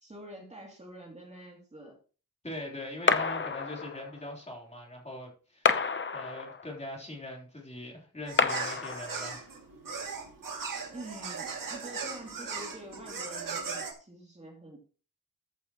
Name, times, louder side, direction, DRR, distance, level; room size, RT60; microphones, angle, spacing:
voice 1, 0.0-2.0 10.9-14.8, right 1 dB, 20° right, 2.8 m, -46 dB
voice 2, 2.4-5.8 6.1-9.5, left 1 dB, 20° left, 3.8 m, -42 dB
sound 1, 3.1-4.2 5.6-6.8 8.4-9.4, left 5 dB, 40° left, 0.8 m, -29 dB
sound 2, 8.3-13.9, right 5 dB, 85° right, 2.6 m, -38 dB
14.5 x 8.4 x 3.1 m
wide cardioid pair, 155°, 32 cm